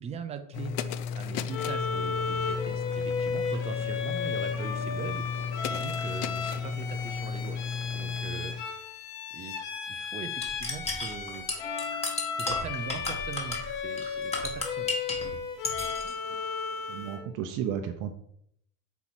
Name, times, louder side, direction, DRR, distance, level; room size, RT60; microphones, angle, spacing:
voice 1, 0.0-5.3 5.7-7.6 7.9-9.0 9.3-11.5 12.4-15.0 15.2-15.4, right 6 dB, 15° right, 8 dB, 0.4 m, -41 dB
sound 1, 0.5-8.6, left 6 dB, 40° left, 0.5 m, -34 dB
Bowed string instrument, 1.5-17.3, left 5 dB, 75° left, 2.5 m, -34 dB
sound 2, 10.4-15.3 15.6-16.1, left 2 dB, 15° left, 1.5 m, -33 dB
voice 2, 16.9-18.1, right 9 dB, 40° right, 6 dB, 0.7 m, -33 dB
8.2 x 4.6 x 7.4 m, 0.68 s
cardioid pair, 170°, 46 cm